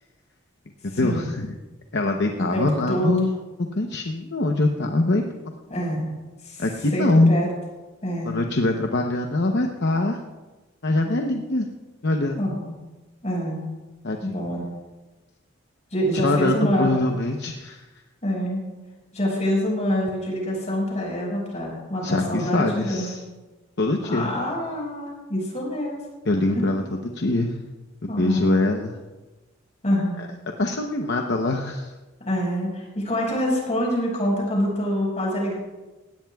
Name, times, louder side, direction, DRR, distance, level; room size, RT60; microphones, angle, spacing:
voice 1, 0.8-1.6 1.9-3.3 3.7-5.2 6.6-7.3 8.2-10.2 10.8-11.7 12.0-12.5 14.0-14.5 16.1-17.8 22.0-23.2 23.8-24.3 26.3-27.6 28.0-29.0 30.2-30.3 30.6-31.9, left 2 dB, 60° left, 3 dB, 0.9 m, -23 dB
voice 2, 2.5-3.1 5.7-6.1 6.4-6.6 6.9-7.5 8.0-8.4 12.4-12.8 13.2-13.7 14.2-14.6 15.9-17.0 18.2-18.6 19.1-23.1 24.1-26.0 26.5-26.6 28.1-28.5 29.8-30.2 32.2-35.6, equal, 35° left, -2 dB, 5.5 m, -26 dB
18.0 x 17.0 x 2.4 m, 1.2 s
head